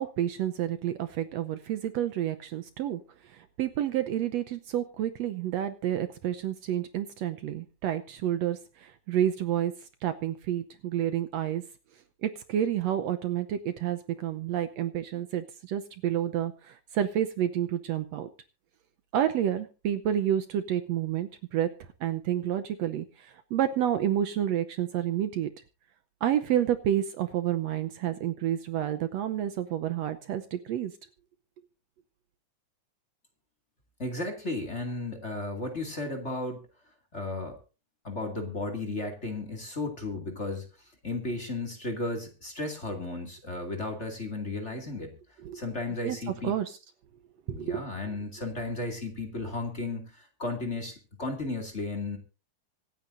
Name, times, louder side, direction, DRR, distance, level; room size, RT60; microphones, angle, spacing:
voice 1, 0.0-9.7 10.0-11.6 12.2-18.3 19.1-21.7 22.0-25.5 26.2-30.9 45.4-45.6 46.0-46.2 46.4-46.8 47.5-47.9, right 11 dB, 70° right, 9 dB, 1.8 m, -29 dB
voice 2, 34.0-36.6 37.1-37.6 38.0-40.7 41.0-45.1 45.5-46.6 47.5-52.2, left 2 dB, 25° left, 4 dB, 2.3 m, -34 dB
25.0 x 9.1 x 2.6 m, 0.32 s
omnidirectional pair, 3.4 m